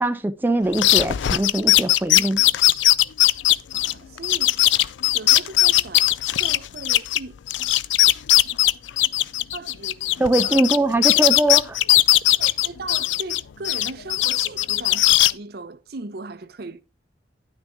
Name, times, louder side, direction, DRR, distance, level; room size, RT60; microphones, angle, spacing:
voice 1, 0.0-2.4 10.2-11.8, right 2 dB, 10° right, 0.4 m, -22 dB
sound 1, 0.7-7.2 7.5-10.8 11.0-13.4 13.6-15.3, left 15 dB, 85° left, 0.4 m, -18 dB
voice 2, 3.7-4.6 5.1-7.4 9.5-10.0 10.4-10.6 12.3-16.8, right 3 dB, 60° right, 0.6 m, -38 dB
10.0 x 6.3 x 3.5 m
head